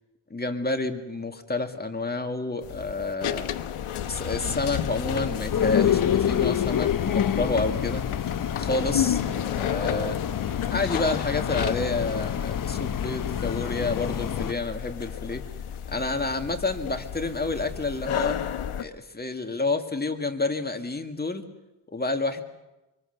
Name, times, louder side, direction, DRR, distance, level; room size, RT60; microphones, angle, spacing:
voice 1, 0.3-3.5 4.1-8.0 8.5-10.2 10.7-15.4 15.9-18.4 18.8-21.5 21.9-22.4, left 3 dB, 20° left, 5 dB, 2.0 m, -29 dB
sound 1, 2.6-18.8, left 10 dB, 90° left, 1.1 m, -32 dB
sound 2, 5.5-14.5, left 9 dB, 40° left, 0.8 m, -27 dB
25.0 x 23.5 x 6.7 m, 1.0 s
cardioid pair, 85°, 48 cm